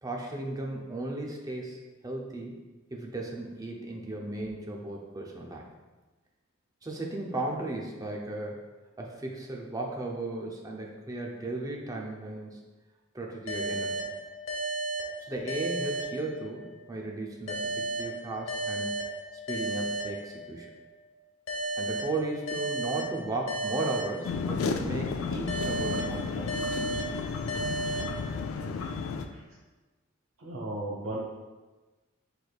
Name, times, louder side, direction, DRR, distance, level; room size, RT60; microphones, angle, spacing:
voice 1, 0.0-1.8 2.0-2.5 2.9-5.7 6.8-8.7 9.0-12.6 13.1-13.9 15.2-19.0 19.5-20.7 21.8-26.6, right 2 dB, 20° right, -1 dB, 0.6 m, -35 dB
sound 1, 13.5-16.8 17.5-20.8 21.5-24.8 25.5-28.8, right 2 dB, 65° left, 0.9 m, -34 dB
sound 2, 24.2-29.3, left 5 dB, 90° left, 0.3 m, -32 dB
voice 2, 30.4-31.2, right 1 dB, 85° right, -7 dB, 0.8 m, -36 dB
6.0 x 3.3 x 2.3 m, 1.2 s
head